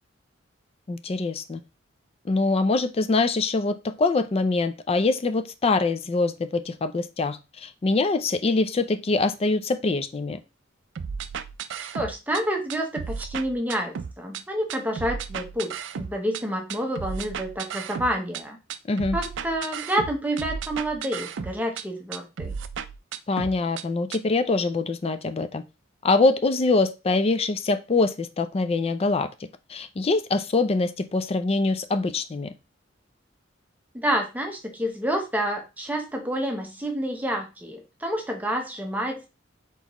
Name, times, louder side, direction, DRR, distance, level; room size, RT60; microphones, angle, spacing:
voice 1, 0.9-1.6 2.3-10.4 18.9-19.2 23.3-25.6 26.0-29.3 29.7-32.5, left 3 dB, 30° left, 0.4 m, -24 dB
sound 1, 11.0-12.4 12.7-14.4 14.7-16.4 16.7-18.4 18.7-21.8 22.1-23.8 24.1-24.2, right 6 dB, 65° right, 0.4 m, -34 dB
voice 2, 11.9-18.6 19.1-22.5 33.9-39.3, equal, 10° right, 0.8 m, -28 dB
4.1 x 4.0 x 3.0 m
head